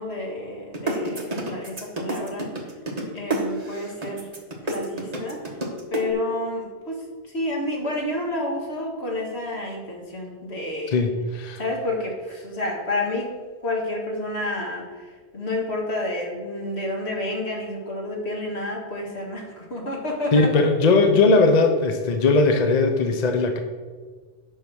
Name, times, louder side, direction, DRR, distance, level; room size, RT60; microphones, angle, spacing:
voice 1, 0.0-2.5 3.1-4.3 4.7-5.4 5.9-7.0 7.3-11.1 11.6-13.3 13.6-20.7, left 1 dB, 65° left, 0 dB, 2.0 m, -29 dB
sound 1, 0.7-6.0, right 2 dB, 35° right, 1.4 m, -28 dB
voice 2, 10.9-11.6 20.3-23.6, left 3 dB, 40° left, 5 dB, 0.8 m, -19 dB
8.6 x 5.7 x 6.2 m, 1.5 s
omnidirectional pair, 1.2 m